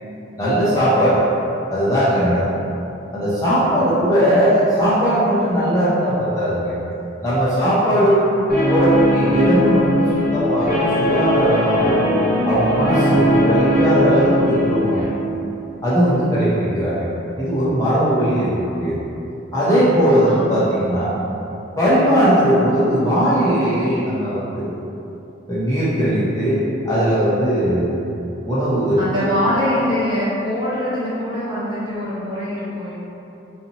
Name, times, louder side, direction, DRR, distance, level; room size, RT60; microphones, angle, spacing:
voice 1, 0.4-1.2 1.7-2.5 3.1-6.8 7.2-8.3 8.7-10.1 10.3-12.0 12.4-15.0 15.8-17.1 17.4-18.9 19.5-21.1 21.8-24.7 25.5-27.9 28.4-29.3, equal, 15° left, -11 dB, 0.6 m, -18 dB
Guitar, 8.5-15.0, equal, 45° left, 0.9 m, -18 dB
voice 2, 18.3-18.7 20.2-20.6 28.9-32.9, left 1 dB, 25° right, -10 dB, 0.9 m, -24 dB
4.1 x 2.8 x 2.7 m, 2.9 s
head